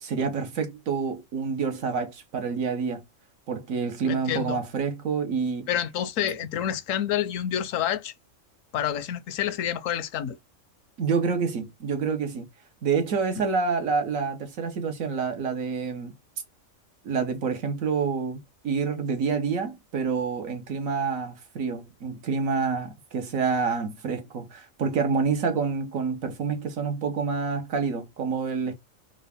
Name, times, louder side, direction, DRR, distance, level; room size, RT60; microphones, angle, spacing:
voice 1, 0.0-3.0 3.5-5.7 11.0-12.4 12.8-16.1 17.0-28.7, right 5 dB, 85° right, 1.4 m, -28 dB
voice 2, 4.1-4.6 5.7-8.1 8.7-10.4, left 10 dB, 80° left, 1.0 m, -28 dB
3.9 x 2.4 x 3.3 m
omnidirectional pair, 1.4 m